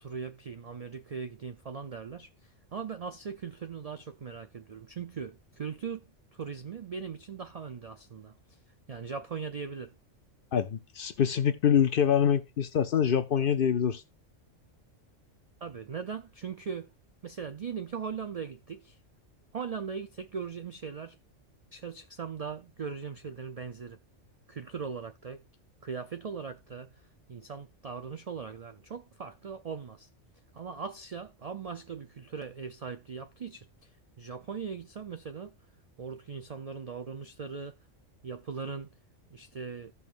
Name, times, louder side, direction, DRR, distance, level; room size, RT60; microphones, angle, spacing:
voice 1, 0.0-8.6 8.9-9.9 15.6-16.9 17.2-19.0 19.5-21.2 21.7-24.0 24.5-25.4 25.8-30.1 30.5-33.9 34.2-35.5 36.0-37.8 38.2-38.9 39.3-39.9, right 6 dB, 60° right, 0.4 m, -39 dB
voice 2, 10.5-14.0, left 8 dB, 55° left, 0.7 m, -25 dB
15.5 x 5.5 x 2.5 m
omnidirectional pair, 1.3 m